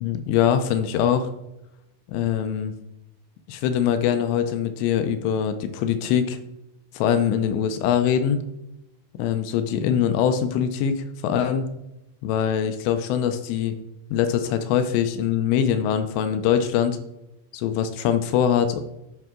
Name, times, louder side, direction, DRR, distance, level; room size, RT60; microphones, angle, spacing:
voice 1, 0.0-1.3 2.1-2.7 3.5-6.4 6.9-8.4 9.2-11.7 12.2-13.8 14.1-17.0 17.5-18.8, left 8 dB, 80° left, 9 dB, 2.7 m, -23 dB
10.5 x 5.9 x 3.7 m, 0.90 s
omnidirectional pair, 5.4 m